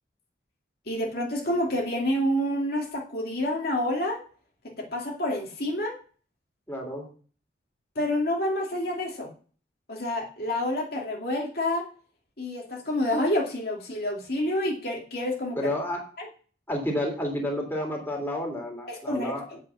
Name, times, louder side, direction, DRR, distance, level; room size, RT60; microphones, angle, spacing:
voice 1, 0.9-4.2 4.8-5.9 7.9-9.3 9.9-11.8 12.4-15.6 16.2-16.3 18.9-19.6, left 1 dB, 55° left, -1 dB, 2.5 m, -28 dB
voice 2, 6.7-7.0 15.5-16.0 16.7-19.4, left 1 dB, 10° left, 0 dB, 3.1 m, -30 dB
8.5 x 7.6 x 6.9 m, 0.41 s
head